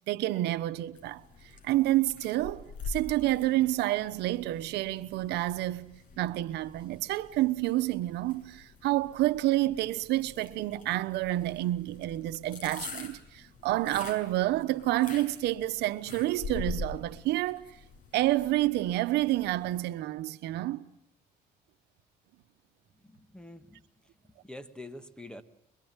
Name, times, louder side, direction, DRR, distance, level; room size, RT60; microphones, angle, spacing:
voice 1, 0.1-1.2 1.6-17.8 18.1-20.8, right 16 dB, 80° right, 1.1 m, -29 dB
sound 1, 1.0-19.8, left 4 dB, 50° left, 6.8 m, -45 dB
voice 2, 23.0-23.8 24.4-25.4, left 1 dB, 5° left, 1.8 m, -45 dB
25.5 x 23.5 x 9.0 m
cardioid pair, 110°, 17 cm